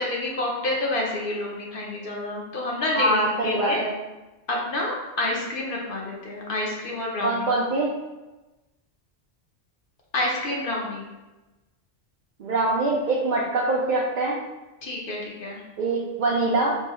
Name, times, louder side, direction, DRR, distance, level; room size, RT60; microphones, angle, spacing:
voice 1, 0.0-3.8 4.5-7.5 10.1-11.1 14.8-15.6, left 2 dB, 55° left, -2 dB, 0.9 m, -28 dB
voice 2, 2.9-3.9 7.2-7.9 12.4-14.4 15.8-16.8, right 2 dB, 55° right, -5 dB, 0.6 m, -23 dB
3.6 x 2.7 x 3.0 m, 1.1 s
omnidirectional pair, 1.2 m